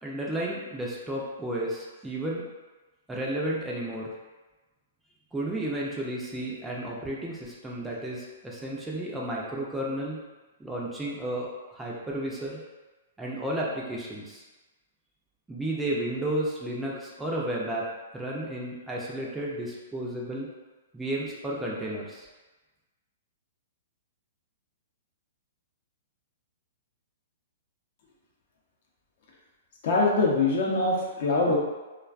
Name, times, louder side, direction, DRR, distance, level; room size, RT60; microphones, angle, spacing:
voice 1, 0.0-2.5 3.1-4.1 5.3-10.2 10.6-12.6 13.2-14.4 15.5-17.9 18.1-20.5 20.9-22.3, right 1 dB, 10° right, -5 dB, 0.4 m, -32 dB
voice 2, 29.8-31.6, left 3 dB, 60° left, -2 dB, 0.6 m, -23 dB
2.4 x 2.2 x 2.4 m, 1.2 s
hypercardioid pair, 135°, 0 cm